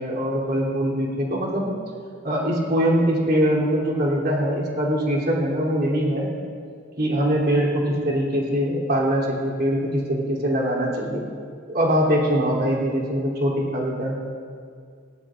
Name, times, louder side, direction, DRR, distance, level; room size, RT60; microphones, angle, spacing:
voice 1, 0.0-1.7 2.2-6.3 7.0-11.2 11.7-14.2, equal, 55° right, -4 dB, 3.0 m, -22 dB
19.5 x 16.0 x 2.5 m, 2.3 s
head